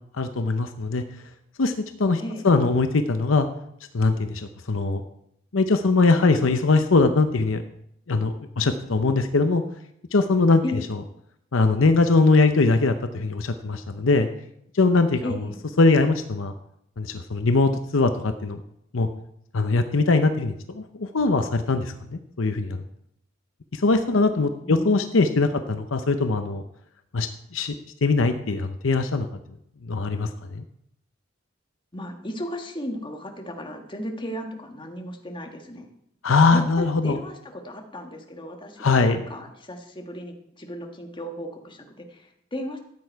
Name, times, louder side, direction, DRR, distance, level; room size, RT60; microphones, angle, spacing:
voice 1, 0.1-1.0 1.6-1.7 2.0-3.5 3.9-5.0 5.5-7.6 8.1-9.6 10.1-10.6 11.5-14.3 14.7-15.5 15.8-16.5 17.0-18.6 18.9-19.1 19.5-22.8 23.7-26.6 27.1-27.7 28.0-29.3 29.8-30.6 36.2-37.2 38.8-39.2, left 3 dB, 75° left, 8 dB, 0.7 m, -21 dB
voice 2, 15.2-15.6 24.6-25.0 31.9-35.9 36.5-42.8, left 1 dB, 25° left, 3 dB, 1.6 m, -35 dB
13.5 x 8.8 x 4.7 m, 0.77 s
head